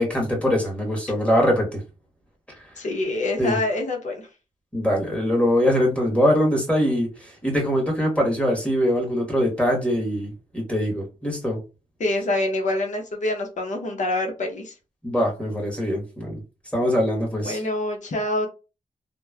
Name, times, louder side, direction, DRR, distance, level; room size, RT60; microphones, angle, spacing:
voice 1, 0.0-1.8 3.4-3.6 4.7-11.6 15.0-16.4 16.7-17.6, equal, 10° left, 1.3 m, -22 dB
voice 2, 2.8-4.2 12.0-14.7 17.4-18.5, left 2 dB, 60° left, 0.8 m, -26 dB
2.9 x 2.1 x 2.3 m
cardioid pair, 65°, 14 cm